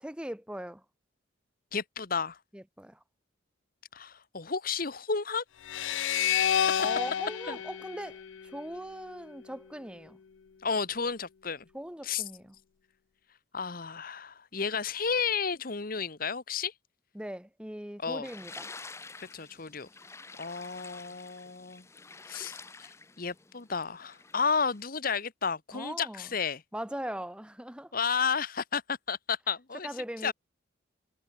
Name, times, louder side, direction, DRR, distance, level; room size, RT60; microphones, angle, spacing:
voice 1, 0.0-0.8 2.5-3.0 6.8-10.2 11.7-12.6 17.1-18.7 25.7-26.3 26.7-27.9 29.8-30.3, right 1 dB, 5° right, 1.2 m, -40 dB
voice 2, 1.7-2.4 3.9-5.4 6.0-6.5 7.5-7.6 10.6-11.6 12.0-12.2 13.5-16.7 18.0-18.3 19.2-19.9 20.4-21.8 22.3-26.6 27.9-29.9 30.2-30.3, left 5 dB, 45° left, 1.1 m, -32 dB
sound 1, 5.6-8.9, left 9 dB, 75° left, 0.5 m, -30 dB
sound 2, 18.2-24.8, left 4 dB, 15° left, 0.5 m, -49 dB
head